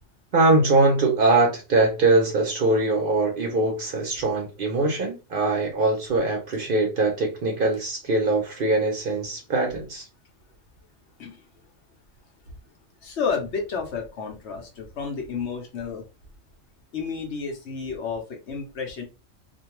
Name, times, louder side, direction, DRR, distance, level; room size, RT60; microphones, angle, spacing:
voice 1, 0.3-10.1, right 2 dB, 55° right, 1 dB, 0.7 m, -22 dB
voice 2, 13.0-16.0 16.9-19.0, left 5 dB, 65° left, 2 dB, 1.0 m, -31 dB
2.5 x 2.2 x 2.9 m, 0.29 s
omnidirectional pair, 1.3 m